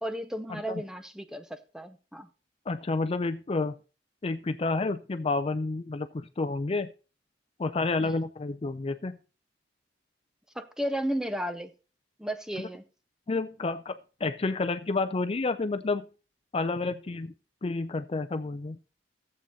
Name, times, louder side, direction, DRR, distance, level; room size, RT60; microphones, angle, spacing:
voice 1, 0.0-2.3 8.0-8.2 10.5-11.7 12.2-12.8, equal, 5° right, 0.7 m, -34 dB
voice 2, 2.7-3.7 4.2-6.9 7.6-9.2 13.3-16.1 16.5-17.3 17.6-18.8, left 3 dB, 30° left, 0.4 m, -30 dB
14.0 x 7.7 x 4.0 m
head